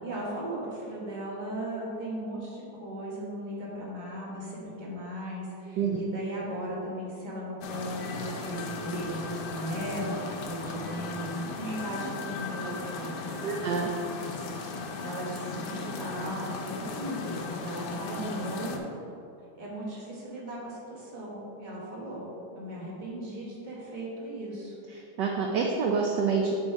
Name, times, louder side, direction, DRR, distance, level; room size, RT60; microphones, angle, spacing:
voice 1, 0.0-10.1 10.4-13.8 15.0-18.9 19.6-22.3 22.5-24.7, right 1 dB, 25° right, -5 dB, 1.2 m, -37 dB
sound 1, 7.6-18.8, left 3 dB, 70° left, 1.0 m, -37 dB
voice 2, 13.4-13.9 25.2-26.6, right 5 dB, 75° right, 1 dB, 1.0 m, -27 dB
7.1 x 4.1 x 4.6 m, 2.7 s
omnidirectional pair, 2.4 m